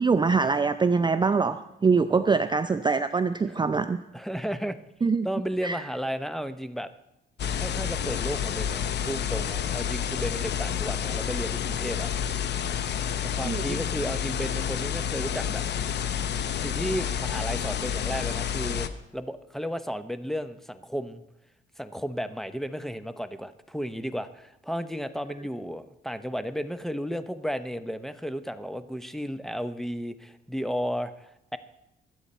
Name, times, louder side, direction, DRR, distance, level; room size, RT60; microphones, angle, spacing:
voice 1, 0.0-4.0 5.0-5.3 5.6-5.8 13.4-13.8, right 4 dB, 25° right, 11 dB, 0.5 m, -24 dB
voice 2, 2.1-2.4 4.1-4.8 5.2-6.9 7.5-12.1 12.8-15.6 16.6-21.2 21.8-31.6, equal, ahead, 11 dB, 0.8 m, -33 dB
sound 1, 7.4-18.9, left 8 dB, 60° left, 0.9 m, -29 dB
22.5 x 8.2 x 4.3 m, 0.89 s
cardioid pair, 90°, 20 cm